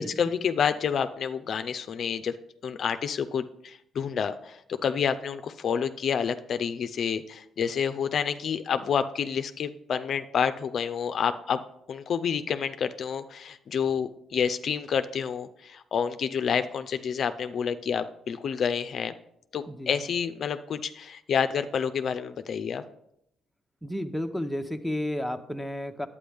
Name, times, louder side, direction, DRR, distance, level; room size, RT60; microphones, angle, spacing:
voice 1, 0.0-2.4 2.6-11.6 11.9-19.1 19.5-22.8, left 7 dB, 60° left, 9 dB, 0.4 m, -29 dB
voice 2, 19.7-20.0 23.8-26.1, left 1 dB, ahead, 5 dB, 0.8 m, -32 dB
10.0 x 8.5 x 3.5 m, 0.76 s
cardioid pair, 90°, 0 cm